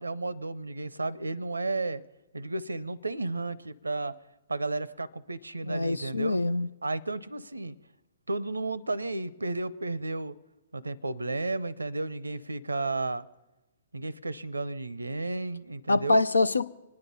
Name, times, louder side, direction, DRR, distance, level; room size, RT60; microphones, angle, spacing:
voice 1, 0.0-2.0 2.3-4.2 4.5-6.4 6.8-7.8 8.3-10.4 10.7-13.3 13.9-16.2, right 2 dB, 85° right, 0.6 m, -33 dB
voice 2, 5.6-6.7 15.9-16.7, left 2 dB, 80° left, 0.5 m, -25 dB
25.5 x 9.7 x 5.5 m
figure-of-eight pair, 120°, 0 cm